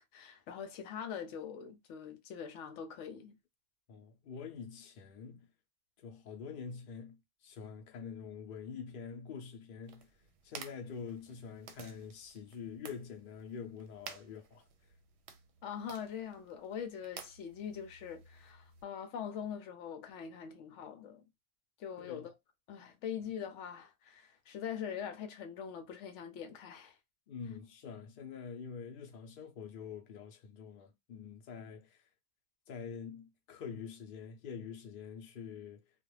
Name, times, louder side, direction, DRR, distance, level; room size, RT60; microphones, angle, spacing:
voice 1, 0.0-3.4 15.6-21.2 21.8-22.3 22.7-27.0, left 8 dB, 80° left, 0.9 m, -43 dB
voice 2, 3.9-5.5 6.0-10.1 10.4-14.7 22.0-22.2 27.3-32.0 32.7-35.8, left 6 dB, 55° left, 0.7 m, -46 dB
sound 1, 9.8-18.8, right 6 dB, 70° right, 0.8 m, -54 dB
2.4 x 2.3 x 3.1 m
omnidirectional pair, 1.2 m